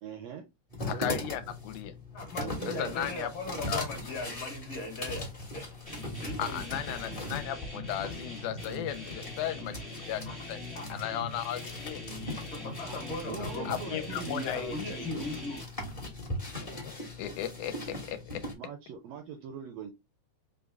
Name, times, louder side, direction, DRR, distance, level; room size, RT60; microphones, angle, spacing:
voice 1, 0.0-0.5 0.8-1.3 2.4-3.0 12.8-15.3 18.5-19.9, right 7 dB, 80° right, 1.5 m, -42 dB
sound 1, 0.7-18.5, left 2 dB, 30° left, 0.6 m, -40 dB
voice 2, 0.9-1.9 2.7-3.3 3.7-4.1 6.4-10.2 10.5-12.6 13.7-15.1 17.2-18.4, left 11 dB, 80° left, 1.9 m, -36 dB
voice 3, 2.1-5.3 5.5-5.7 6.2-6.8 10.3-10.4 10.7-10.9 12.5-15.6, left 2 dB, 55° left, 1.5 m, -38 dB
sound 2, 5.9-15.6, equal, 10° right, 0.6 m, -43 dB
5.0 x 2.1 x 3.4 m
omnidirectional pair, 3.5 m